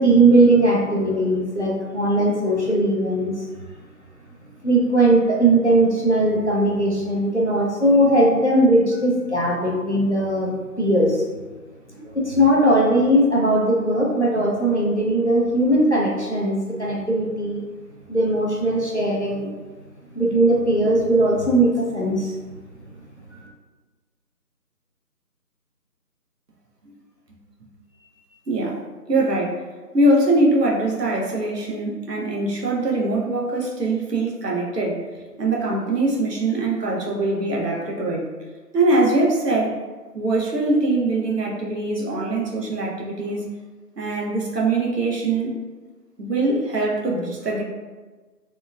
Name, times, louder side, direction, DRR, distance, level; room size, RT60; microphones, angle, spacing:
voice 1, 0.0-3.5 4.6-11.2 11.9-17.6 18.1-19.5 20.2-22.4 23.3-23.4, right 1 dB, 50° left, -4 dB, 0.4 m, -19 dB
voice 2, 28.5-28.8 29.1-29.6 29.9-35.0 35.4-38.2 38.7-39.8 40.1-43.4 44.0-45.5 46.2-47.6, right 2 dB, 80° right, -2 dB, 0.8 m, -22 dB
2.8 x 2.3 x 2.3 m, 1.3 s
figure-of-eight pair, 165°, 48 cm